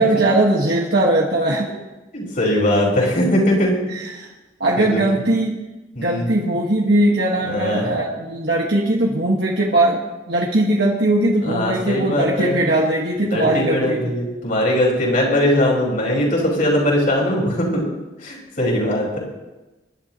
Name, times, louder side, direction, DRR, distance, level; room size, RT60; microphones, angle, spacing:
voice 1, 0.0-1.7 4.0-4.3 4.6-5.6 6.0-14.0, right 1 dB, 65° right, -3 dB, 1.7 m, -19 dB
voice 2, 2.1-3.9 4.8-5.0 5.9-6.3 7.4-7.9 11.4-12.6 13.2-17.8 18.2-19.2, left 1 dB, 50° left, -3 dB, 5.3 m, -20 dB
26.5 x 11.5 x 3.1 m, 1.1 s
head